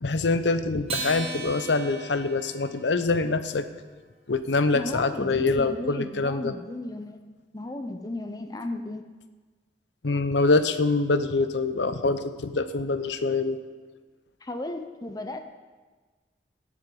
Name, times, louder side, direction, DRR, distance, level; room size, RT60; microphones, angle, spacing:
voice 1, 0.0-3.7 4.3-6.5 10.0-13.6, left 3 dB, 90° left, 11 dB, 0.8 m, -25 dB
Acoustic guitar, 0.8-3.5, right 3 dB, 35° right, 1.4 m, -37 dB
voice 2, 4.7-9.0 14.4-15.4, left 1 dB, 20° left, 7 dB, 0.6 m, -35 dB
17.0 x 7.5 x 5.3 m, 1.4 s
head